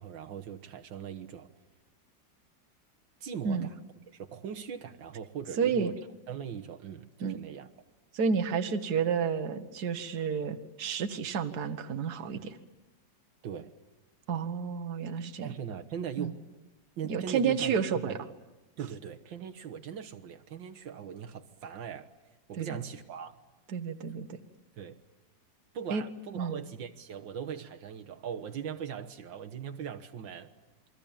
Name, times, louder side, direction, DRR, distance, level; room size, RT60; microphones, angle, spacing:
voice 1, 0.0-1.5 3.2-3.8 4.1-6.0 6.3-7.7 13.4-13.7 15.4-16.4 17.0-18.2 18.8-22.1 22.5-23.4 24.8-25.0 25.7-30.5, right 8 dB, 85° right, 5 dB, 2.0 m, -40 dB
voice 2, 5.6-5.9 7.2-7.4 8.1-12.6 14.3-15.5 16.2-16.3 17.1-18.2 22.6-22.8 23.7-24.4 25.9-26.0 26.4-26.6, right 6 dB, 55° right, 8 dB, 1.8 m, -30 dB
28.5 x 23.5 x 8.8 m, 1.1 s
omnidirectional pair, 2.0 m